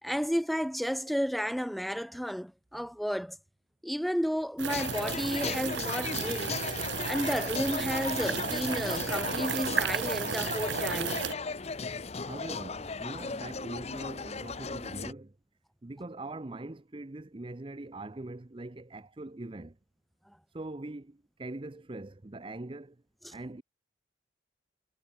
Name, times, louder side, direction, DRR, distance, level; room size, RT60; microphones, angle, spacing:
voice 1, 0.0-3.4 3.8-6.6 7.0-11.3 23.2-23.3, equal, ahead, 1.1 m, -32 dB
sound 1, 4.6-11.3, right 7 dB, 65° right, 0.9 m, -34 dB
sound 2, 4.7-15.1, left 4 dB, 35° left, 0.7 m, -36 dB
voice 2, 12.3-15.3 15.8-19.8 20.5-23.0 23.3-23.6, right 2 dB, 25° right, 0.6 m, -42 dB
head